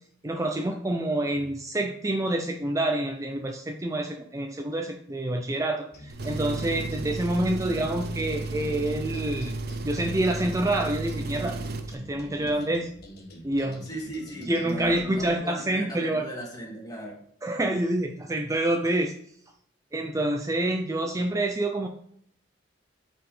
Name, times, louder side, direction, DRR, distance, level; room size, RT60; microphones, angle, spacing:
voice 1, 0.2-9.5 9.8-11.5 11.9-12.8 13.4-13.9 14.5-16.2 17.4-19.1 19.9-21.9, right 1 dB, 15° right, 4 dB, 0.5 m, -27 dB
sound 1, 5.9-15.4, equal, 55° left, 1.5 m, -46 dB
Engine, 6.1-11.9, right 2 dB, 60° right, 0.7 m, -33 dB
voice 2, 13.6-17.2, right 1 dB, 20° left, -1 dB, 2.1 m, -38 dB
8.8 x 4.8 x 3.3 m, 0.67 s
head